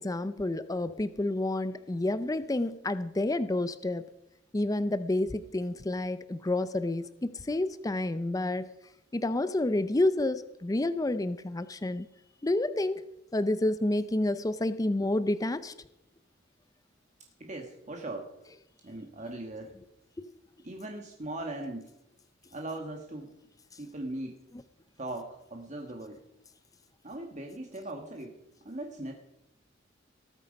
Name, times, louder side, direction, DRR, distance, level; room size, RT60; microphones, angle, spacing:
voice 1, 0.0-4.1 4.5-8.7 9.1-12.1 12.4-13.0 13.3-15.7 20.2-20.3, left 2 dB, 20° left, 13 dB, 0.5 m, -29 dB
voice 2, 17.4-18.3 18.8-19.7 20.6-21.9 22.5-23.3 23.8-24.5 25.0-26.2 27.0-28.4 28.6-29.1, right 2 dB, 40° right, 2 dB, 1.5 m, -39 dB
19.0 x 9.1 x 5.3 m, 0.87 s
head